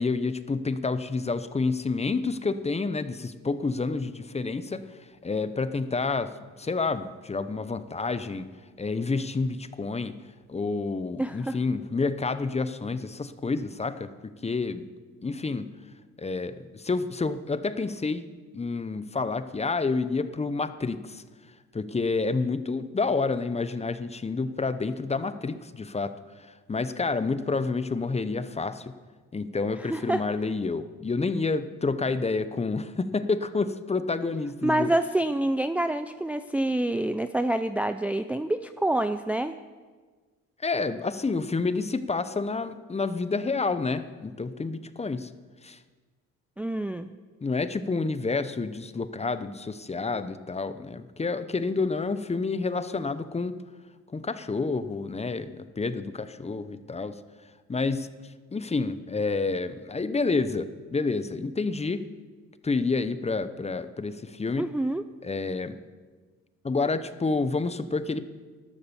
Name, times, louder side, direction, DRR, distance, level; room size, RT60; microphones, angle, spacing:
voice 1, 0.0-4.8 5.2-8.5 8.8-10.1 10.5-14.9 15.2-15.7 16.2-18.3 18.5-21.2 21.7-26.1 26.7-28.9 29.3-34.9 40.6-45.3 45.6-45.8 47.4-53.5 54.1-57.1 57.7-58.1 58.5-62.0 62.6-64.7 65.2-65.8 66.6-68.2, left 3 dB, 20° left, 12 dB, 0.8 m, -29 dB
voice 2, 11.2-11.6 29.8-30.2 34.6-39.6 46.6-47.1 64.6-65.0, right 1 dB, 5° right, 9 dB, 0.5 m, -27 dB
12.5 x 12.0 x 7.1 m, 1.4 s
cardioid pair, 90°, 30 cm